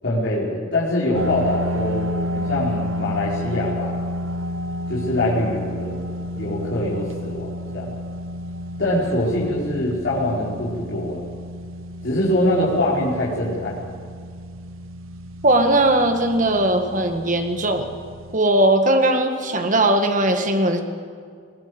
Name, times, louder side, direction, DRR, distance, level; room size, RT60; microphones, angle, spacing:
voice 1, 0.0-2.1 2.3-4.0 4.9-6.0 6.4-7.9 8.8-11.2 12.0-13.8, left 1 dB, 55° left, -8 dB, 4.9 m, -23 dB
sound 1, 1.1-18.4, equal, 85° right, 1.0 m, -31 dB
voice 2, 15.4-17.9 18.3-20.8, right 1 dB, 40° right, 5 dB, 1.9 m, -19 dB
20.5 x 19.5 x 8.0 m, 2.1 s
head